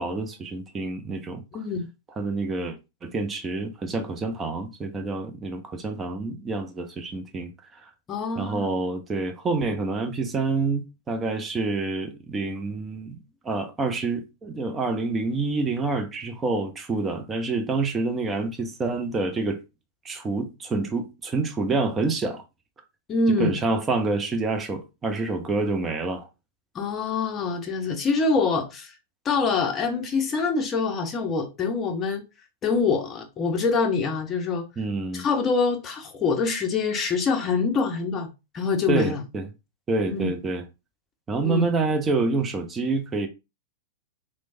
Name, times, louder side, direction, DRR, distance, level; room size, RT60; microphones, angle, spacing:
voice 1, 0.0-1.4 2.2-7.9 8.4-13.2 13.4-19.6 20.0-22.4 23.4-26.3 34.8-35.2 38.9-39.5 39.9-40.6 41.3-43.3, right 3 dB, 20° right, 0.5 m, -27 dB
voice 2, 1.5-1.9 8.1-8.7 23.1-23.6 26.7-28.9 29.2-32.2 32.6-34.7 35.1-38.3 38.5-39.2 40.1-40.3 41.4-41.7, left 4 dB, 25° left, 0.6 m, -25 dB
3.1 x 2.1 x 2.4 m
figure-of-eight pair, 95°, 0 cm